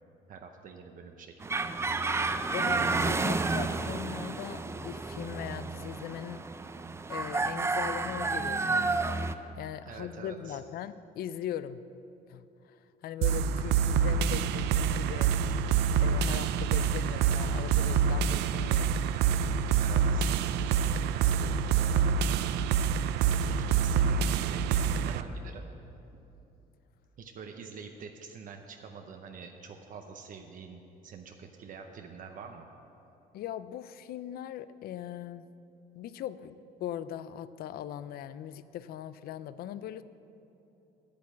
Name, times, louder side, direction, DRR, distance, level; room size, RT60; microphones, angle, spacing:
voice 1, 0.3-1.7 9.8-10.6 19.8-22.2 23.5-25.7 27.2-32.7, right 5 dB, 55° right, 4 dB, 0.7 m, -46 dB
sound 1, 1.4-9.3, right 3 dB, 15° right, 0.4 m, -31 dB
voice 2, 2.5-6.6 7.1-9.0 9.6-11.8 12.3-15.3 16.0-19.0 33.3-35.4 35.9-40.0, left 10 dB, 65° left, 15 dB, 0.4 m, -40 dB
sound 2, 13.2-25.2, right 7 dB, 80° right, 0.4 m, -26 dB
8.6 x 8.3 x 7.5 m, 2.9 s
cardioid pair, 110°, 17 cm